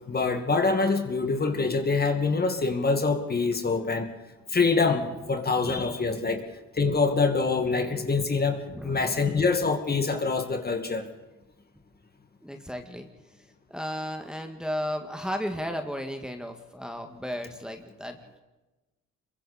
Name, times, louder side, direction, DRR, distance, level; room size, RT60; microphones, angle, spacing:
voice 1, 0.1-4.1 4.5-6.4 6.7-11.1, left 4 dB, 30° left, 5 dB, 2.1 m, -25 dB
voice 2, 5.6-6.0 8.7-9.3 12.4-13.1 13.7-18.4, equal, 5° right, 4 dB, 1.9 m, -34 dB
27.0 x 22.5 x 4.3 m, 1.1 s
cardioid pair, 90°, 30 cm